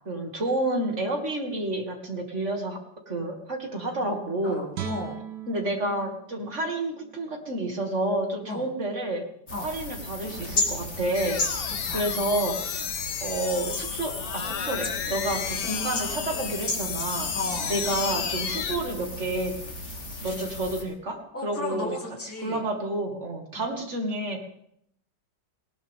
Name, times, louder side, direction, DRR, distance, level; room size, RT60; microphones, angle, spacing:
voice 1, 0.1-2.8 3.1-4.7 5.5-9.2 9.6-12.8 13.2-17.3 17.7-19.6 20.2-21.9 22.4-24.4, right 1 dB, 40° right, 2 dB, 2.7 m, -30 dB
voice 2, 3.7-4.2 4.4-5.2 8.5-8.6 9.5-9.7 11.8-12.0 17.3-17.8 21.3-22.6 23.6-23.7, left 2 dB, 5° left, -3 dB, 3.2 m, -35 dB
Guitar, 4.7-7.9 8.3-8.5, right 7 dB, 65° right, 1.7 m, -40 dB
sound 1, 9.5-20.8, left 2 dB, 35° left, 2.8 m, -34 dB
sound 2, 11.1-18.8, left 7 dB, 55° left, 1.4 m, -32 dB
19.0 x 19.0 x 3.7 m, 0.70 s
omnidirectional pair, 2.0 m